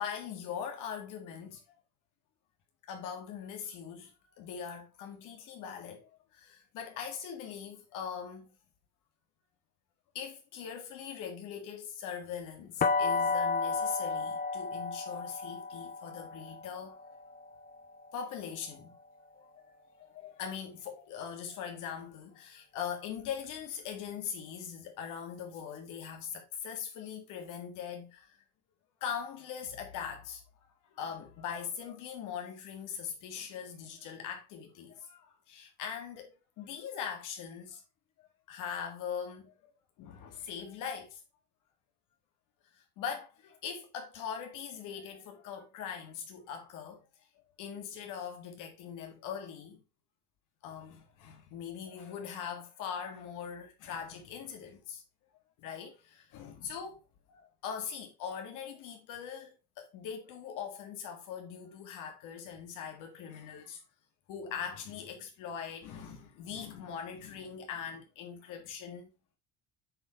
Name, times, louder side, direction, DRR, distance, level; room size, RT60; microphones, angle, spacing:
voice 1, 0.0-1.6 2.9-8.5 10.1-17.0 18.1-19.0 19.3-19.5 20.0-28.4 29.0-30.4 30.9-37.8 38.2-39.7 40.0-41.2 42.8-47.1 47.6-49.8 50.6-55.0 55.6-57.0 57.3-63.8 64.3-69.1, left 7 dB, 75° left, 1.8 m, -41 dB
sound 1, 12.8-18.6, left 4 dB, 30° left, 0.8 m, -33 dB
7.8 x 3.9 x 4.3 m
cardioid pair, 130°, 31 cm